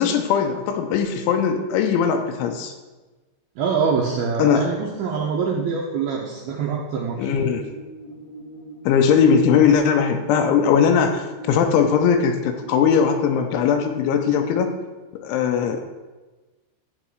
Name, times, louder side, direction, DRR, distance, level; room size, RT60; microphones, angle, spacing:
voice 1, 0.0-2.7 4.4-4.7 7.2-7.7 8.9-14.7 15.1-15.8, left 7 dB, 85° left, 6 dB, 3.0 m, -19 dB
voice 2, 3.6-7.3, right 5 dB, 80° right, -2 dB, 2.2 m, -24 dB
sound 1, 7.2-14.7, equal, 65° left, 2.4 m, -41 dB
12.0 x 8.2 x 4.8 m, 1.2 s
omnidirectional pair, 5.7 m